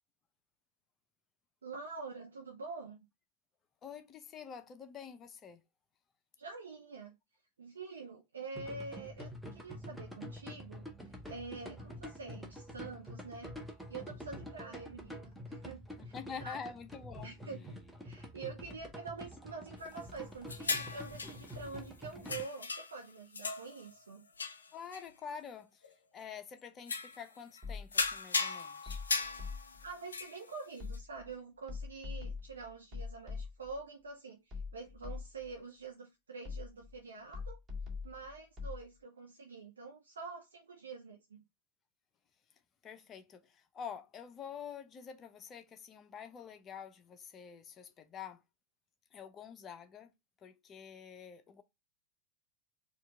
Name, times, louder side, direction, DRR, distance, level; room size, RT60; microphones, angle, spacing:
voice 1, 1.6-3.0 6.4-7.1 7.6-13.5 13.9-16.1 16.4-16.6 17.2-24.2 29.8-37.6 38.0-41.4, right 4 dB, 70° right, 0.7 m, -46 dB
voice 2, 3.8-5.6 16.0-17.3 24.7-29.0 42.8-48.4 49.1-50.1 50.4-51.6, left 7 dB, 25° left, 0.6 m, -47 dB
sound 1, 8.5-22.4, equal, ahead, 0.9 m, -47 dB
sound 2, 20.5-21.7 22.2-23.1 23.3-24.1 24.4-25.0 25.8-25.9 26.9-27.2 27.6-27.7 27.9-31.0, left 4 dB, 75° left, 0.5 m, -37 dB
sound 3, 27.6-28.1 28.9-29.9 30.8-31.3 31.7-33.8 34.5-35.6 36.4-37.0 37.3-38.8, left 4 dB, 15° right, 1.8 m, -43 dB
4.4 x 2.4 x 3.6 m
figure-of-eight pair, 90°, 0 cm